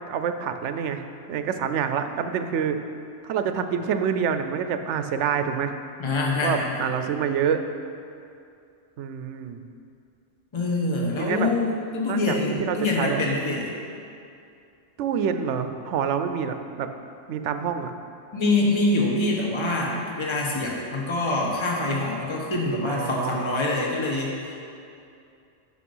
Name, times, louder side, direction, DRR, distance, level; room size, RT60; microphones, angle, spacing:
voice 1, 0.1-1.0 1.3-2.8 3.2-5.7 6.4-7.6 9.0-9.6 11.2-11.5 12.1-12.2 12.6-13.2 15.0-16.9 17.3-17.9 22.8-23.6, right 7 dB, 85° right, 8 dB, 0.9 m, -27 dB
voice 2, 6.0-6.8 10.5-13.7 18.3-24.4, left 2 dB, 25° left, -2 dB, 1.1 m, -25 dB
8.5 x 5.9 x 5.4 m, 2.5 s
omnidirectional pair, 1.2 m